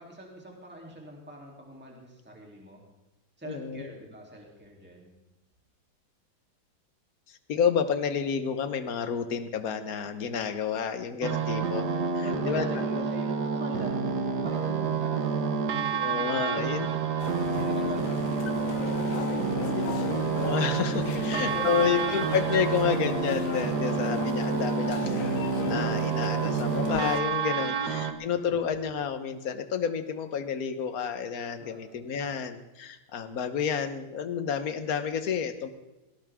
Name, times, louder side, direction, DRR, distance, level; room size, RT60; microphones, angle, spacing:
voice 1, 0.0-2.8 3.4-5.1 12.2-17.2 17.6-20.1 21.0-22.2 23.8-24.2 27.6-28.0 31.6-32.1, right 1 dB, 5° right, -2 dB, 3.1 m, -43 dB
voice 2, 3.4-3.9 7.3-11.9 12.1-12.7 14.6-14.9 16.0-16.9 17.8-17.9 20.2-35.7, left 7 dB, 50° left, 10 dB, 1.5 m, -30 dB
sound 1, 11.2-28.1, right 5 dB, 60° right, 1.7 m, -29 dB
sound 2, 17.2-27.2, left 9 dB, 65° left, 0.8 m, -37 dB
19.0 x 18.0 x 3.7 m, 1.1 s
omnidirectional pair, 2.1 m